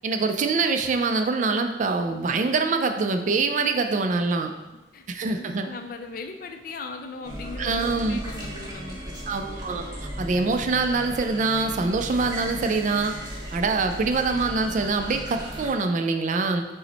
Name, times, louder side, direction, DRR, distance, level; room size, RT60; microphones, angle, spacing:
voice 1, 0.0-4.5 5.1-5.7 7.6-8.2 9.3-13.1 13.5-16.7, right 3 dB, 45° right, 6 dB, 0.3 m, -24 dB
voice 2, 4.9-9.2, left 3 dB, 50° left, 5 dB, 0.4 m, -38 dB
sound 1, 7.2-15.7, equal, 25° right, 0.9 m, -36 dB
5.5 x 2.1 x 3.9 m, 1.1 s
head